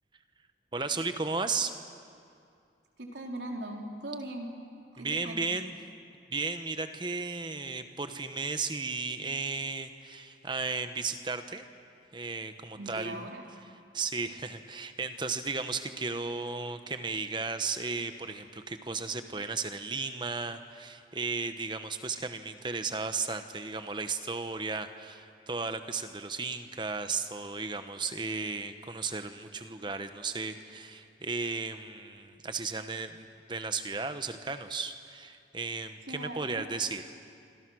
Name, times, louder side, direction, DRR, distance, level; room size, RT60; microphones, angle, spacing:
voice 1, 0.7-1.7 5.0-5.7 6.3-11.6 12.1-13.2 13.9-37.0, right 4 dB, 25° right, 8 dB, 1.1 m, -35 dB
voice 2, 3.0-4.5 5.0-5.4 12.8-13.5 36.1-36.7, right 1 dB, 80° right, 1 dB, 3.5 m, -39 dB
26.5 x 26.0 x 6.3 m, 2.4 s
head